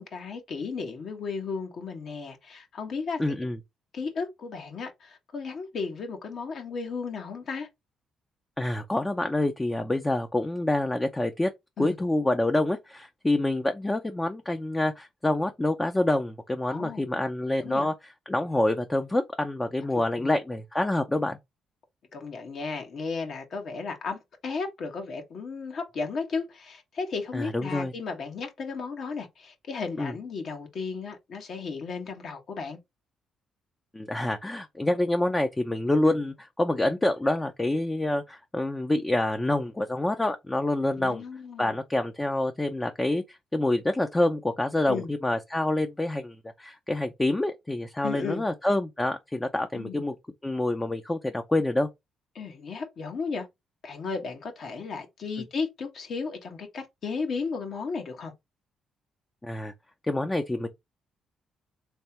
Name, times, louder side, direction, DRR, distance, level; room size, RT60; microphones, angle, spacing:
voice 1, 0.0-3.2 3.9-7.7 11.8-12.0 16.7-17.0 17.6-17.9 19.9-20.3 22.1-32.8 36.1-36.2 41.0-41.7 44.9-45.1 48.0-48.4 49.7-50.1 52.3-53.5 53.8-58.3, left 4 dB, 60° left, 1.3 m, -34 dB
voice 2, 3.2-3.6 8.6-11.5 11.8-21.4 27.3-27.9 30.0-30.1 33.9-41.2 41.6-50.1 50.4-51.9 59.4-59.7 60.1-60.7, left 1 dB, 15° left, 0.6 m, -27 dB
3.4 x 3.3 x 2.9 m
cardioid pair, 90°, 0 cm